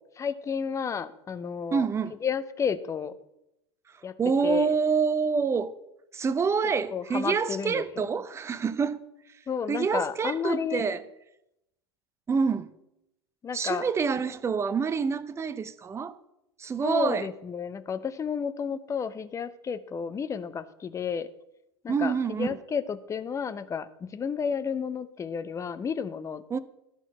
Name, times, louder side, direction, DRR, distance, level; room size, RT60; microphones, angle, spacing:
voice 1, 0.2-1.8 2.2-3.1 4.0-4.1 4.4-4.7 6.9-8.1 9.5-10.9 13.4-13.8 16.8-21.3 21.8-26.6, left 6 dB, 20° left, 0.7 m, -32 dB
voice 2, 1.7-2.2 4.2-5.8 6.1-9.0 9.7-11.0 12.3-12.7 13.5-16.2 16.6-17.3 21.9-22.5 26.5-26.6, right 5 dB, 20° right, 0.6 m, -27 dB
12.5 x 4.5 x 5.5 m
figure-of-eight pair, 85°, 14 cm